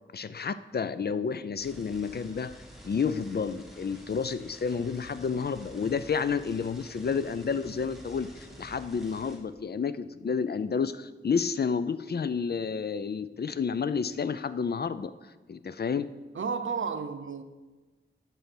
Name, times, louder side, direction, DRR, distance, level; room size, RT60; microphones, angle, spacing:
voice 1, 0.1-2.5 2.8-15.1 15.5-16.1, left 6 dB, 55° left, 0.4 m, -30 dB
sound 1, 1.6-9.4, equal, ahead, 1.6 m, -49 dB
voice 2, 16.3-17.4, right 5 dB, 85° right, 0.6 m, -32 dB
10.5 x 4.2 x 6.1 m
wide cardioid pair, 80°, 20 cm